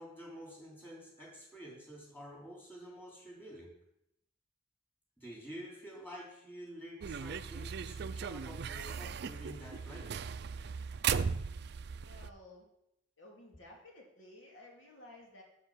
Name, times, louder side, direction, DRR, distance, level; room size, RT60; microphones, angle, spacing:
voice 1, 0.0-3.7 5.2-10.1, equal, 10° left, -3 dB, 3.3 m, -49 dB
sound 1, 7.0-12.3, right 6 dB, 60° right, 0.4 m, -37 dB
voice 2, 12.0-12.7 13.2-15.4, left 1 dB, 85° left, -1 dB, 2.4 m, -55 dB
7.9 x 7.6 x 6.3 m, 0.79 s
head